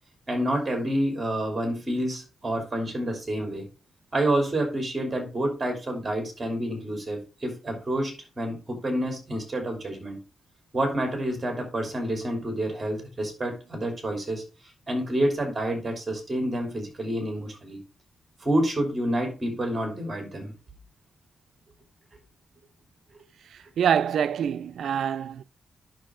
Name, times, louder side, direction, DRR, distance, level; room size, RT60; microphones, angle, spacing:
voice 1, 0.3-3.7 4.1-10.2 10.7-14.4 14.9-17.8 18.4-20.5, right 1 dB, 20° right, 3.2 m, -28 dB
voice 2, 23.5-25.4, right 8 dB, 80° right, 0.3 m, -26 dB
10.0 x 6.0 x 3.7 m
wide cardioid pair, 155°, 0 cm